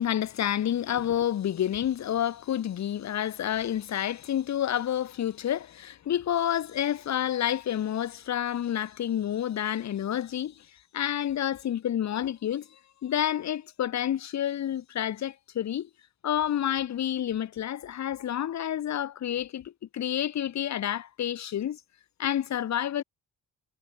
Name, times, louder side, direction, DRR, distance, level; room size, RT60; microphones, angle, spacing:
voice 1, 0.0-10.7 10.9-15.9 16.2-21.8 22.2-23.0, left 10 dB, 35° left, 0.6 m, -29 dB
supercardioid pair, 45°, 49 cm